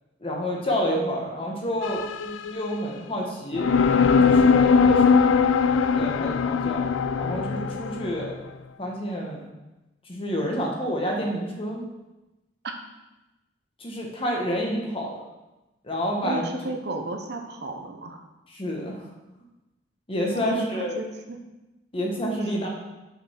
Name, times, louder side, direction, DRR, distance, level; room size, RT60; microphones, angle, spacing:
voice 1, 0.2-3.7 4.2-5.3 5.9-6.9 7.2-8.3 8.8-9.4 10.1-11.8 13.8-15.2 15.8-16.5 18.5-19.1 20.1-21.0 21.9-22.7, equal, 30° left, -1 dB, 1.3 m, -29 dB
sound 1, 1.8-3.0 3.5-8.3, left 5 dB, 85° left, 0.4 m, -20 dB
voice 2, 16.2-18.2 20.3-21.4 22.4-22.7, right 2 dB, 55° right, 4 dB, 0.8 m, -34 dB
5.8 x 5.3 x 5.8 m, 1.0 s
head